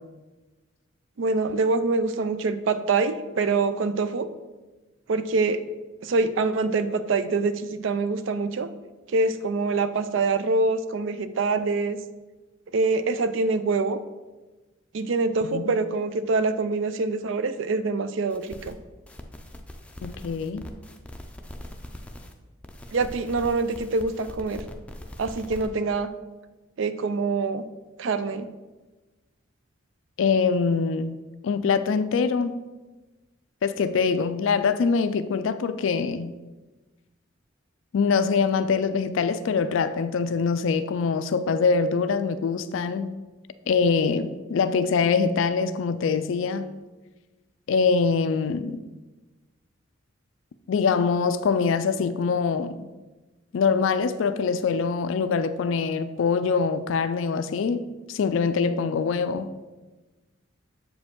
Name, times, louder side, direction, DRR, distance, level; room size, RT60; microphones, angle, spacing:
voice 1, 1.2-4.3 5.1-5.6 6.0-8.7 9.1-12.0 12.7-14.0 14.9-18.8 22.9-24.6 25.2-26.1 26.8-27.7 28.0-28.5, right 3 dB, 65° right, 12 dB, 0.4 m, -25 dB
sound 1, 18.3-18.7 19.1-22.3 22.6-25.7, left 1 dB, 5° left, 0.4 m, -42 dB
voice 2, 20.0-20.7 30.2-31.2 31.4-32.6 33.6-36.3 37.9-43.2 43.7-46.7 47.7-48.8 50.7-52.9 53.5-59.5, left 5 dB, 70° left, 12 dB, 0.3 m, -24 dB
7.4 x 4.9 x 3.7 m, 1.2 s
head